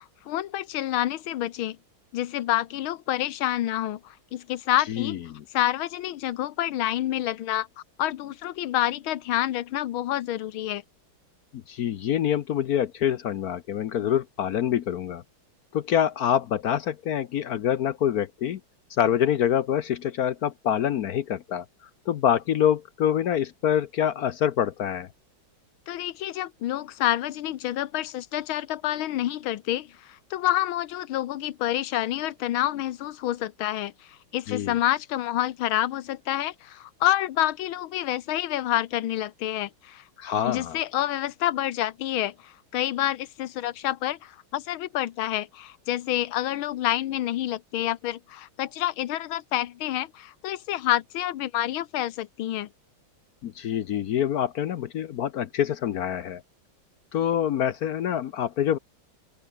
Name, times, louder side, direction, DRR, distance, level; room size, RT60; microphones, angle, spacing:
voice 1, 0.0-1.8 2.1-5.2 5.5-7.7 8.0-10.8 25.9-40.0 40.4-52.7, left 13 dB, 80° left, 1.7 m, -28 dB
voice 2, 4.9-5.2 11.5-15.2 15.7-18.6 19.0-21.6 22.1-25.1 34.5-34.8 40.2-40.8 53.4-56.4 57.1-58.8, left 9 dB, 65° left, 1.0 m, -26 dB
open air
omnidirectional pair, 2.3 m